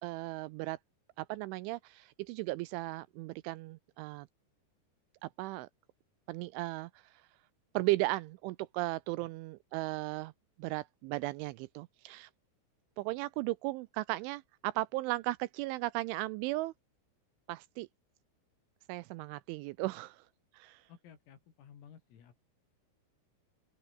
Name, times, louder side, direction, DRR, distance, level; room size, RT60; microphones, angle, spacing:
voice 1, 0.0-0.8 1.2-4.3 5.2-5.7 6.3-7.2 7.7-10.3 10.6-12.3 13.0-16.7 17.5-17.9 18.9-20.3 20.5-20.8, right 19 dB, 85° right, 2.8 m, -36 dB
voice 2, 20.9-22.4, left 8 dB, 80° left, 6.7 m, -56 dB
open air
omnidirectional pair, 6.0 m